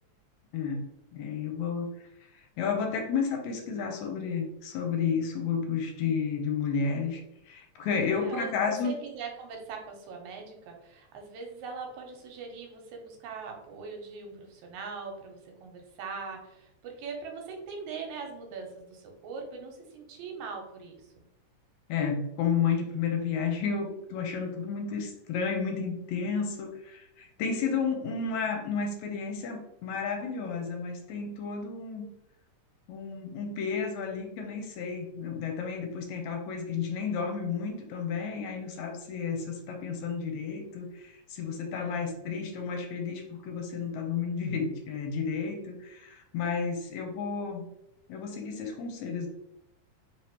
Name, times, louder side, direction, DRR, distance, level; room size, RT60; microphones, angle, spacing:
voice 1, 0.5-1.9 2.6-7.2 7.5-9.0 21.9-32.1 32.9-47.6 48.1-49.3, left 6 dB, 80° left, 3 dB, 1.9 m, -32 dB
voice 2, 8.1-21.3 41.8-42.3, right 5 dB, 80° right, 2 dB, 2.1 m, -41 dB
4.3 x 3.4 x 2.9 m, 0.85 s
omnidirectional pair, 3.4 m